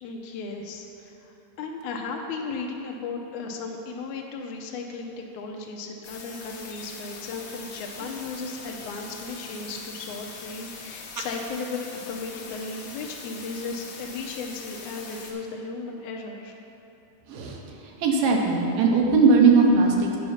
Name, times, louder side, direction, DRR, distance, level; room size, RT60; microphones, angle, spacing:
voice 1, 0.0-16.5, left 4 dB, 85° left, 1 dB, 1.7 m, -35 dB
sound 1, 6.0-15.3, left 4 dB, 65° left, 1.8 m, -42 dB
voice 2, 17.3-17.6 18.0-20.2, right 4 dB, 75° right, 0 dB, 2.4 m, -19 dB
10.0 x 5.5 x 5.7 m, 2.9 s
omnidirectional pair, 4.2 m